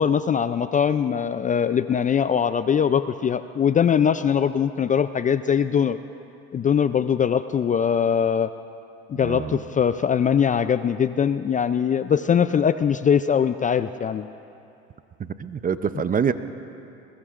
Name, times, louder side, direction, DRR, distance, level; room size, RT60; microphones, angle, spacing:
voice 1, 0.0-6.0 6.5-8.5 9.1-14.3, left 7 dB, 25° left, 12 dB, 0.4 m, -21 dB
voice 2, 9.1-9.6 15.2-16.3, right 7 dB, 30° right, 12 dB, 0.6 m, -26 dB
22.0 x 21.5 x 2.5 m, 2.7 s
supercardioid pair, 85°, 30 cm